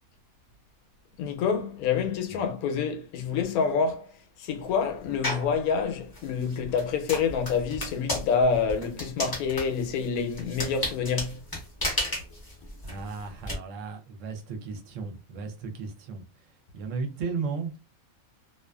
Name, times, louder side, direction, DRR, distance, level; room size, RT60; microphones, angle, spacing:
voice 1, 1.2-4.1 4.4-11.4, left 6 dB, 85° left, 1.1 m, -27 dB
sound 1, 5.2-5.6 6.1-13.5, left 1 dB, 25° left, 0.5 m, -33 dB
voice 2, 12.8-17.8, right 5 dB, 65° right, 0.9 m, -35 dB
2.4 x 2.4 x 2.2 m
omnidirectional pair, 1.5 m